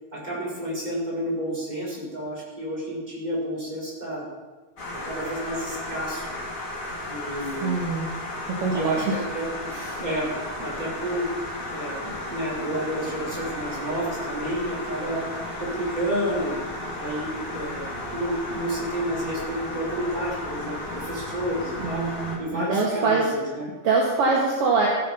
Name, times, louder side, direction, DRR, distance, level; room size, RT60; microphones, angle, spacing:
voice 1, 0.1-4.2 5.0-6.3 7.1-7.8 8.7-9.5 10.0-10.3 10.6-11.3 11.7-15.2 15.6-16.6 17.0-22.0 22.4-23.7, right 1 dB, 15° right, -5 dB, 4.9 m, -30 dB
sound 1, 4.8-22.4, left 1 dB, 30° left, 2.5 m, -34 dB
voice 2, 7.6-8.1 8.5-9.2 9.7-10.0 21.8-23.3 23.8-24.9, right 4 dB, 55° right, -3 dB, 2.6 m, -24 dB
15.0 x 9.7 x 5.7 m, 1.3 s
omnidirectional pair, 3.4 m